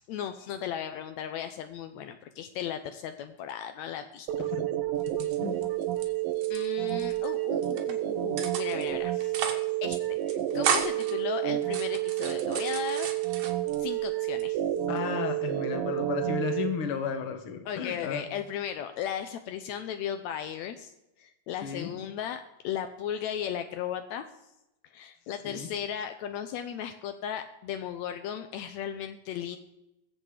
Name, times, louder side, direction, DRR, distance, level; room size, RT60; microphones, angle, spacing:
voice 1, 0.0-4.3 6.5-9.3 9.8-13.1 13.8-14.6 17.6-20.9 21.2-24.2 24.9-29.6, left 9 dB, 85° left, 8 dB, 1.6 m, -36 dB
sound 1, 4.3-16.7, right 13 dB, 80° right, 2.7 m, -30 dB
voice 2, 5.0-5.6 14.9-18.2 21.6-21.9 25.4-25.7, left 6 dB, 50° left, 7 dB, 1.8 m, -33 dB
sound 2, 5.0-6.0 6.3-7.3 7.6-7.9 8.4-8.9 9.2-9.6 9.9-10.0 10.3-11.1 11.6-13.8 14.2-14.8, right 7 dB, 65° right, 2.8 m, -33 dB
22.5 x 7.7 x 4.9 m, 0.90 s
omnidirectional pair, 4.0 m